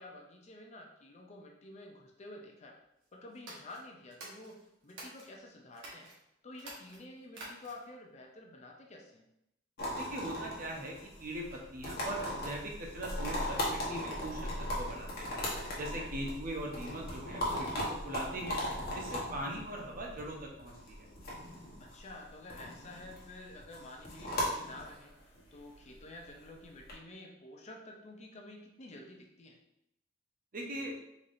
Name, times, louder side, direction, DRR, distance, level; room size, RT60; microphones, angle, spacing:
voice 1, 0.0-2.8 3.1-6.1 6.4-9.3 15.9-16.1 21.8-25.2 25.5-29.6, left 2 dB, 35° left, 1 dB, 0.5 m, -50 dB
sound 1, 3.3-5.3 5.7-6.1 6.5-7.9, right 1 dB, 75° right, 1.1 m, -49 dB
sound 2, 9.8-26.9, left 1 dB, 55° left, 1.1 m, -38 dB
voice 2, 10.0-10.9 11.2-15.4 15.8-18.6 18.9-21.1 30.5-30.9, right 1 dB, 45° right, 0 dB, 0.7 m, -40 dB
4.0 x 3.3 x 2.5 m, 0.81 s
head